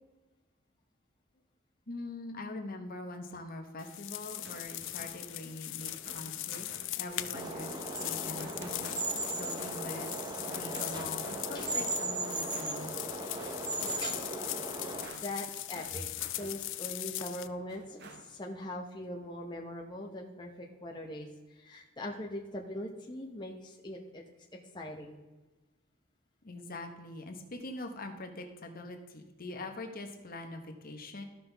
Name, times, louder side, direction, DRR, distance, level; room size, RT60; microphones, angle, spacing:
voice 1, 1.9-6.7 7.0-7.7 8.0-8.9 9.3-10.1 10.5-12.9 26.4-31.2, left 2 dB, 45° left, 4 dB, 1.1 m, -43 dB
sound 1, 3.8-17.5, left 16 dB, 60° left, 0.4 m, -40 dB
sound 2, 4.2-17.0 17.4-18.6, right 3 dB, 55° right, 0.9 m, -52 dB
sound 3, 7.3-15.1, right 2 dB, 20° right, 0.9 m, -37 dB
voice 2, 15.2-16.1 16.4-24.2 24.7-25.2, left 1 dB, 20° left, -1 dB, 0.9 m, -41 dB
14.0 x 5.7 x 3.4 m, 1.1 s
head